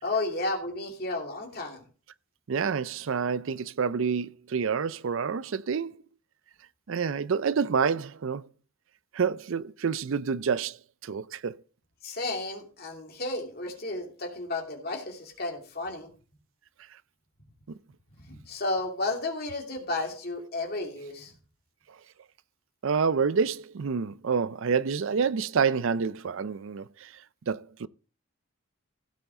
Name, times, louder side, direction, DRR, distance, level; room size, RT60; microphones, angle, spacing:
voice 1, 0.0-1.8 12.0-16.1 18.2-21.3, left 2 dB, 45° left, 2.8 m, -33 dB
voice 2, 2.5-6.0 6.9-8.5 9.1-10.8 11.0-11.6 17.7-17.8 22.8-27.9, right 6 dB, 70° right, 0.5 m, -28 dB
16.0 x 7.0 x 3.8 m
head